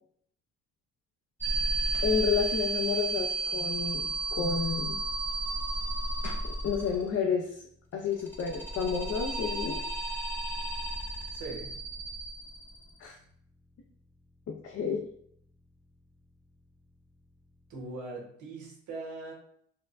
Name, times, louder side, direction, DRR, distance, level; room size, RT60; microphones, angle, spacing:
sound 1, 1.4-7.2 8.1-13.0, right 2 dB, 5° left, 0.7 m, -33 dB
sound 2, 1.9-2.2 5.9-6.0 6.2-6.6, left 2 dB, 90° left, 0.9 m, -46 dB
voice 1, 2.0-5.0 6.6-7.5 7.9-9.8 13.0-13.1 14.5-15.0, left 6 dB, 55° left, 0 dB, 0.6 m, -30 dB
voice 2, 11.3-11.8 17.7-19.3, right 3 dB, 75° right, -2 dB, 1.2 m, -40 dB
4.3 x 2.1 x 2.5 m, 0.65 s
cardioid pair, 90°, 30 cm